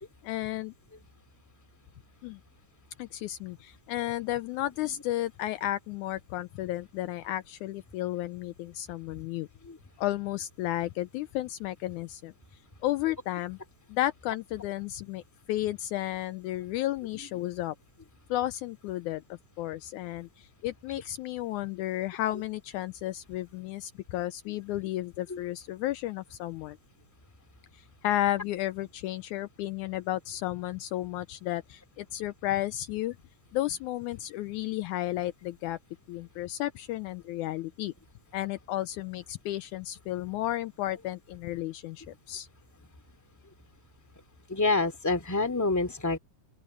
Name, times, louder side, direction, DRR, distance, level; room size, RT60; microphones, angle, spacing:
voice 1, 0.2-0.7 2.2-2.4 3.0-9.5 10.0-12.3 12.8-13.6 13.9-15.2 15.5-17.8 18.3-19.2 19.6-26.8 28.0-33.2 33.5-35.8 36.1-37.9 38.3-42.5, left 14 dB, 80° left, 1.9 m, -33 dB
voice 2, 44.5-46.2, left 3 dB, 5° left, 2.2 m, -27 dB
open air
omnidirectional pair, 3.7 m